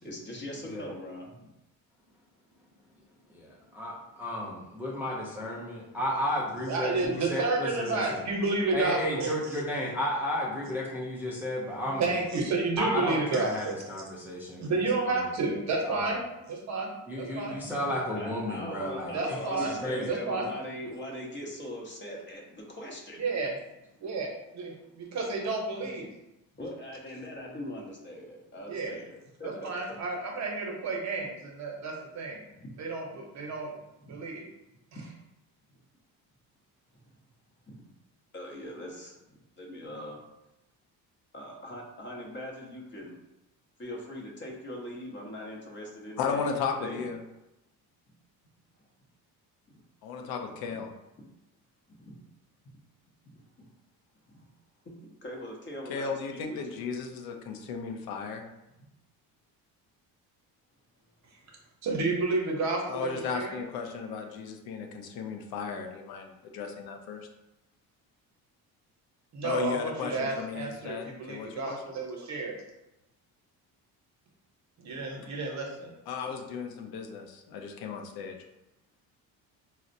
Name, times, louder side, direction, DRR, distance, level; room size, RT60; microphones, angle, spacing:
voice 1, 0.0-1.5 17.3-23.2 26.5-30.0 32.5-32.8 34.1-34.2 34.9-35.1 35.7-35.8 37.7-37.8 38.3-40.3 41.3-43.2 43.8-47.0 50.7-50.8 51.2-51.3 52.0-52.2 53.3-53.4 54.3-54.5 54.8-54.9 55.2-56.8, equal, 30° left, -1 dB, 0.7 m, -41 dB
voice 2, 3.3-8.2 8.7-12.0 12.8-14.8 15.1-15.2 15.9-16.0 17.1-19.2 19.8-20.1, left 1 dB, 5° right, -5 dB, 0.4 m, -33 dB
voice 3, 6.7-9.6 12.0-13.8 14.6-16.2 16.5-16.9 17.2-17.6 19.1-19.8 20.0-20.5 23.2-23.5 24.0-26.1 28.7-28.9 29.4-32.4 32.8-33.7 34.1-34.4 61.8-63.6 69.3-72.5 74.8-75.9, right 3 dB, 45° right, 0 dB, 0.7 m, -31 dB
voice 4, 46.2-47.2 50.0-50.9 55.9-58.4 62.9-67.2 69.4-71.8 76.1-78.4, left 6 dB, 75° left, 3 dB, 0.6 m, -35 dB
4.1 x 2.0 x 2.6 m, 0.94 s
cardioid pair, 120°, 37 cm